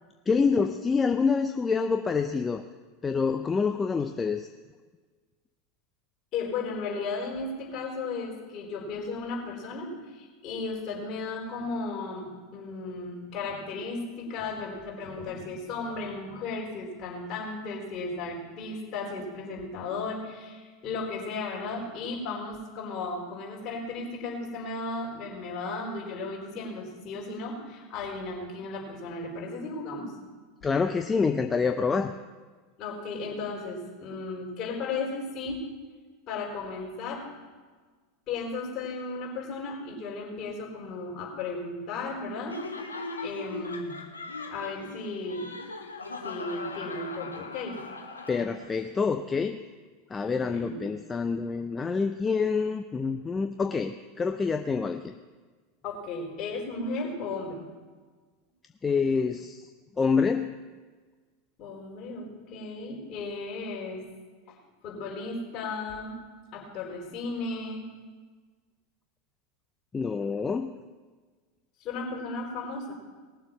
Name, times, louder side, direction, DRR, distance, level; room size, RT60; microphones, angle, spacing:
voice 1, 0.3-2.6 3.0-4.5 30.6-32.1 48.3-49.6 50.1-55.2 58.8-59.7 60.0-60.6 69.9-70.8, left 5 dB, 20° left, 7 dB, 0.7 m, -27 dB
voice 2, 6.3-30.1 32.8-35.7 36.3-37.3 38.3-42.6 43.2-43.9 44.5-45.5 46.2-47.8 50.2-50.8 55.8-57.6 61.6-64.0 64.5-64.6 64.8-66.2 66.5-67.9 71.8-72.9, left 3 dB, 40° left, -2 dB, 4.4 m, -35 dB
Laughter, 42.5-48.8, left 3 dB, 90° left, 1.2 m, -39 dB
19.5 x 7.4 x 5.9 m, 1.4 s
figure-of-eight pair, 85°, 0 cm